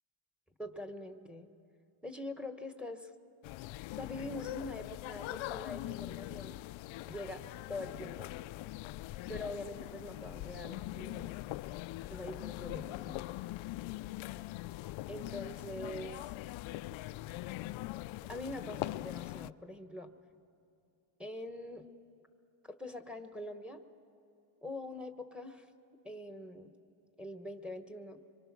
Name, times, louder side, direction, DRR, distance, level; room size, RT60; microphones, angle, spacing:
voice 1, 0.6-1.5 2.0-3.1 3.9-6.6 7.0-8.3 9.3-11.3 12.1-13.5 15.1-16.3 18.2-20.1 21.2-21.9 22.6-23.8 24.6-25.7 26.0-26.7 27.2-28.2, left 1 dB, ahead, 7 dB, 1.3 m, -44 dB
sound 1, 3.4-19.5, left 17 dB, 75° left, 0.5 m, -42 dB
26.0 x 23.5 x 6.1 m, 2.8 s
cardioid pair, 125°, 46 cm